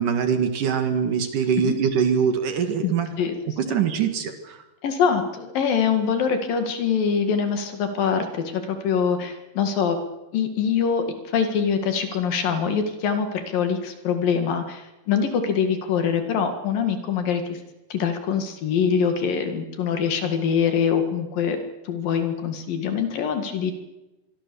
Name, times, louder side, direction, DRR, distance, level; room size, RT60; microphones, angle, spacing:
voice 1, 0.0-3.1 3.6-4.6, right 7 dB, 60° right, 7 dB, 3.2 m, -23 dB
voice 2, 4.8-10.0 10.3-17.6 17.9-21.6 21.9-23.7, left 6 dB, 65° left, 7 dB, 3.6 m, -24 dB
24.5 x 23.0 x 7.0 m, 1.0 s
omnidirectional pair, 4.4 m